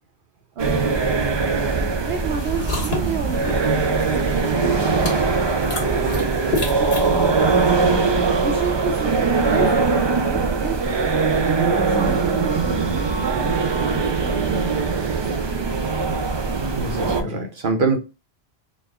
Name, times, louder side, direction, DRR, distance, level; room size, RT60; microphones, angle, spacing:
sound 1, 0.6-17.2, right 4 dB, 40° right, 0.4 m, -21 dB
voice 1, 0.6-1.0 2.0-5.3 5.8-7.9 8.4-10.8 11.4-14.9 15.2-16.1, right 5 dB, 80° right, 0.9 m, -31 dB
sound 2, 2.3-7.9, left 3 dB, 80° left, 1.4 m, -32 dB
voice 2, 16.8-18.0, right 3 dB, 55° right, 1.1 m, -23 dB
4.1 x 2.3 x 3.5 m
omnidirectional pair, 1.0 m